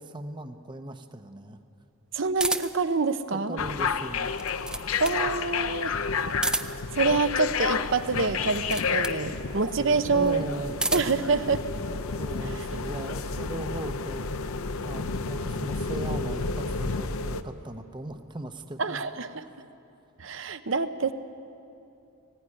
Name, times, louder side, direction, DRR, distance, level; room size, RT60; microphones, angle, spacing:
voice 1, 0.0-1.6 3.3-4.3 9.3-9.4 9.7-10.8 12.2-14.3 14.8-19.0 19.3-19.5, right 1 dB, 20° right, 7 dB, 0.8 m, -38 dB
voice 2, 2.1-3.6 5.0-6.0 6.9-10.5 10.9-11.6 12.5-12.6 18.8-19.5 20.2-21.1, right 4 dB, 60° right, 11 dB, 0.8 m, -26 dB
sound 1, 2.4-2.9 4.2-5.2 6.3-6.9 8.4-9.2 10.5-11.2, right 2 dB, 5° right, 0.4 m, -31 dB
sound 2, 3.6-17.4, left 5 dB, 75° left, 0.7 m, -31 dB
19.0 x 16.0 x 9.8 m, 2.7 s
head